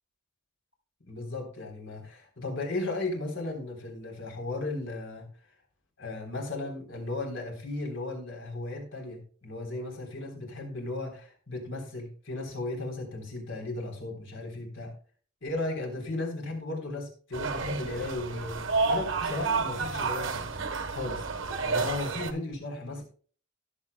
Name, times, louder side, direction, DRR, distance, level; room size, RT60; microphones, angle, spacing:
voice 1, 1.1-5.3 6.0-14.9 15.4-20.6 20.9-21.2 21.6-23.1, left 2 dB, 60° left, 2 dB, 3.6 m, -35 dB
sound 1, 17.3-22.3, right 4 dB, 65° right, 1.2 m, -31 dB
17.5 x 7.7 x 2.2 m, 0.42 s
head